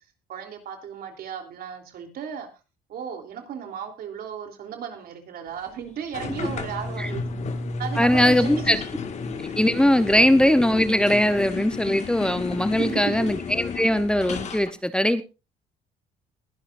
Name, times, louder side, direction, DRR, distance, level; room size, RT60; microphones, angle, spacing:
voice 1, 0.3-2.5 2.9-7.2 7.8-8.8 12.8-13.3, right 7 dB, 65° right, 5 dB, 3.4 m, -35 dB
sound 1, 6.1-14.7, left 4 dB, 45° left, 1.9 m, -32 dB
voice 2, 8.0-8.8 9.6-15.2, left 1 dB, 5° left, 11 dB, 0.9 m, -20 dB
21.0 x 11.5 x 2.6 m, 0.30 s
cardioid pair, 110°, 17 cm